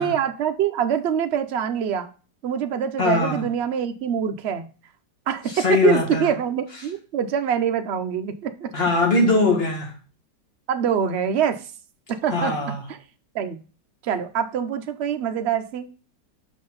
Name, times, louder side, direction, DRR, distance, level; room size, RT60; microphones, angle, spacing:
voice 1, 0.0-2.1 2.4-4.7 5.3-8.7 10.7-11.7 12.1-12.5 12.9-13.0 13.3-13.6 14.0-15.9, right 8 dB, 75° right, 0.6 m, -24 dB
voice 2, 3.0-3.4 5.5-6.3 8.7-9.9 12.3-12.8, left 3 dB, 35° left, 2.2 m, -21 dB
6.0 x 5.6 x 3.9 m
omnidirectional pair, 1.9 m